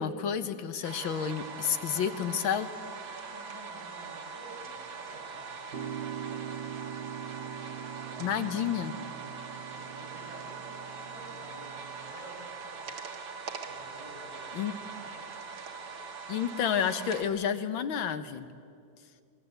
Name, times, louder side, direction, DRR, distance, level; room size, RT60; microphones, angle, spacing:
voice 1, 0.0-2.7 8.2-9.0 14.5-14.7 16.3-18.5, left 8 dB, 80° left, 10 dB, 1.9 m, -30 dB
sound 1, 0.8-17.2, right 5 dB, 85° right, 2.5 m, -42 dB
voice 2, 3.2-5.7 9.1-13.2 13.6-15.2, right 1 dB, 15° right, -3 dB, 7.2 m, -52 dB
sound 2, 5.7-12.1, right 9 dB, 65° right, 1.6 m, -42 dB
26.0 x 21.5 x 8.1 m, 2.3 s
omnidirectional pair, 2.1 m